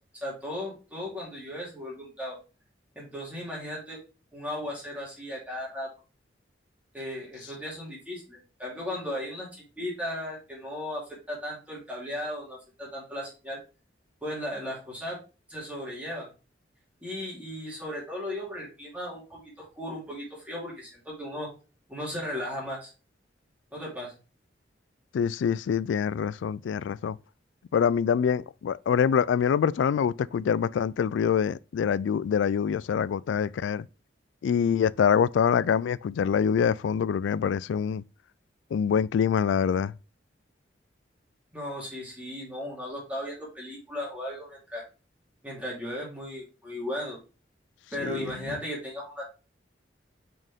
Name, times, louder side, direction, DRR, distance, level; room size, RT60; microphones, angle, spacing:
voice 1, 0.1-2.4 2.9-4.0 4.3-5.9 6.9-13.6 14.2-15.2 15.5-16.3 17.0-21.5 21.9-22.9 23.7-24.1 41.5-44.8 45.4-47.2 47.9-49.2, left 1 dB, 10° right, 2.7 m, -36 dB
voice 2, 25.1-27.2 27.7-33.9 34.4-38.0 38.7-39.9 48.0-48.2, left 7 dB, 80° left, 0.3 m, -25 dB
6.2 x 4.4 x 3.5 m
head